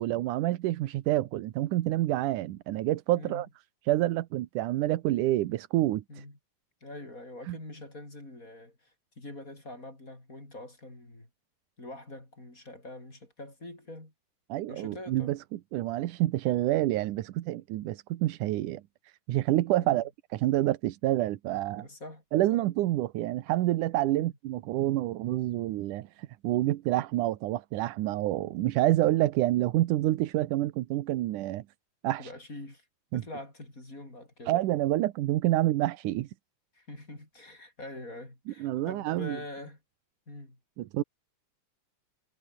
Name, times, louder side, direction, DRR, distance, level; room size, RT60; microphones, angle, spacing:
voice 1, 0.0-3.5 3.8-6.3 7.5-7.6 14.5-21.9 22.3-31.6 32.0-32.3 33.1-33.2 34.5-36.3 38.5-39.4 40.8-41.0, right 15 dB, 85° right, 2.5 m, -28 dB
voice 2, 3.1-3.4 6.1-6.4 6.8-8.9 9.2-11.3 11.8-14.1 14.7-15.3 19.8-20.0 21.8-22.2 22.5-22.6 24.2-24.3 32.2-32.8 33.1-34.5 36.7-39.8 40.3-40.6, left 1 dB, 25° left, 6.5 m, -44 dB
omnidirectional pair, 3.6 m